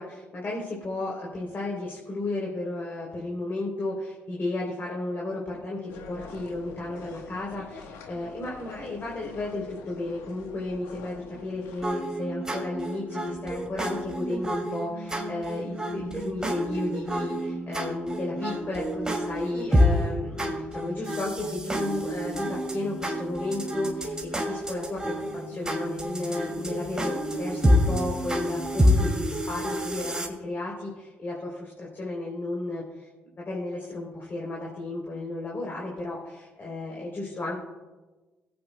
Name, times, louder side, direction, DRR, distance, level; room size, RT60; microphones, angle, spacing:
voice 1, 0.0-25.1 25.5-33.1 33.4-37.6, left 2 dB, 40° left, -3 dB, 3.4 m, -33 dB
sound 1, 5.9-11.8, left 4 dB, 80° left, 1.2 m, -46 dB
sound 2, 11.8-30.3, equal, 15° right, 2.5 m, -28 dB
21.0 x 8.8 x 2.3 m, 1.2 s
hypercardioid pair, 55°, 5 cm